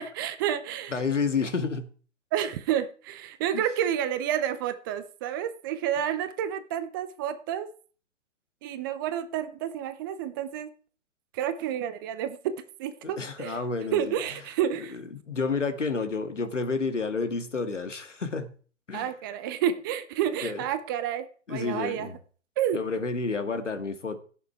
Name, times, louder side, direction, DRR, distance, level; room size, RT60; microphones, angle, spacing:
voice 1, 0.0-0.9 2.3-7.7 8.6-10.7 11.3-12.5 12.8-13.6 13.9-15.0 18.9-22.1 22.6-22.8, right 10 dB, 20° right, 11 dB, 0.6 m, -30 dB
voice 2, 0.9-1.9 3.5-3.6 13.0-14.2 14.9-18.5 18.9-19.1 20.4-20.7 21.5-22.2 22.7-24.2, left 4 dB, 75° left, 8 dB, 2.0 m, -30 dB
16.5 x 7.0 x 4.6 m, 0.41 s
figure-of-eight pair, 125°, 36 cm